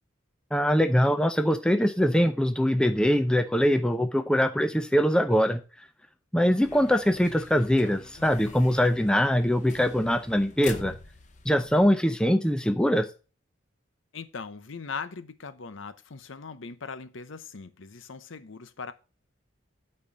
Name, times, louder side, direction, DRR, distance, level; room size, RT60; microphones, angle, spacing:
voice 1, 0.5-5.6 6.3-10.9 11.4-13.1, equal, 5° left, 0.6 m, -23 dB
sound 1, 6.6-11.9, left 4 dB, 35° left, 0.8 m, -45 dB
voice 2, 14.1-18.9, left 5 dB, 75° left, 0.7 m, -40 dB
8.7 x 4.4 x 6.2 m
head